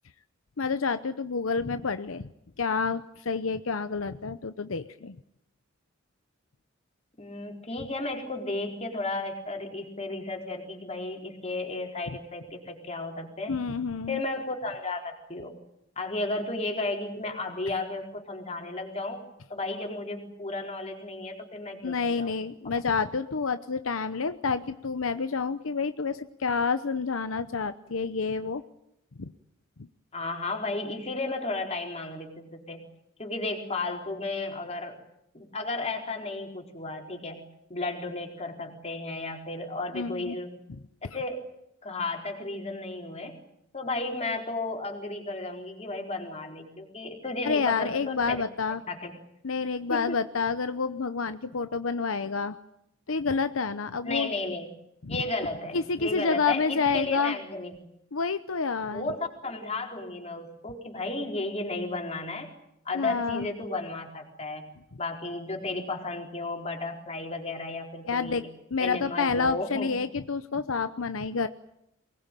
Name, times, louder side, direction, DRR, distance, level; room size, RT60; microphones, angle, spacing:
voice 1, 0.6-2.3 2.6-5.2 13.5-14.2 21.8-28.6 29.2-29.3 39.9-40.4 47.4-48.8 49.4-52.6 53.1-54.3 55.0-55.2 55.7-57.3 58.1-59.1 62.9-63.5 68.1-68.4 68.7-71.5, left 5 dB, 80° left, 11 dB, 0.8 m, -29 dB
voice 2, 7.2-13.6 14.1-15.5 16.0-19.2 19.5-22.3 22.6-22.7 30.1-32.9 33.2-35.0 35.3-37.4 37.7-40.5 41.0-41.5 41.8-43.4 43.7-48.4 48.9-49.2 49.9-50.2 54.0-54.7 55.1-57.9 58.9-62.5 62.8-64.7 65.0-68.5 68.8-69.9, left 2 dB, 30° left, 2 dB, 4.3 m, -33 dB
23.5 x 20.0 x 9.1 m, 0.80 s
head